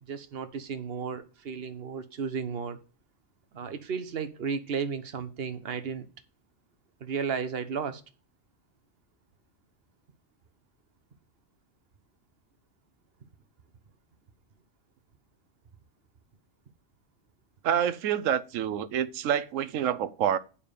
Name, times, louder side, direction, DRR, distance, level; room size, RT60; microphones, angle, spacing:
voice 1, 0.0-2.8 3.5-6.1 7.0-8.0, right 6 dB, 55° right, 1.1 m, -34 dB
voice 2, 17.6-20.4, right 9 dB, 85° right, 1.0 m, -27 dB
7.1 x 5.7 x 6.6 m
omnidirectional pair, 1.3 m